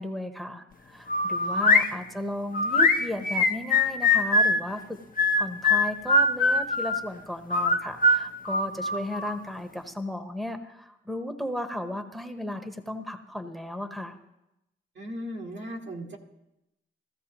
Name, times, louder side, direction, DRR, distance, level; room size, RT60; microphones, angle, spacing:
voice 1, 0.0-5.0 5.4-14.2, left 1 dB, ahead, 6 dB, 1.1 m, -35 dB
sound 1, 1.1-1.9 2.5-4.6 5.2-7.0 7.5-9.4, left 2 dB, 45° left, 0.8 m, -22 dB
voice 2, 1.4-1.7 15.0-16.2, equal, 65° right, -1 dB, 1.9 m, -37 dB
15.5 x 13.5 x 3.0 m, 0.91 s
cardioid pair, 65°, 20 cm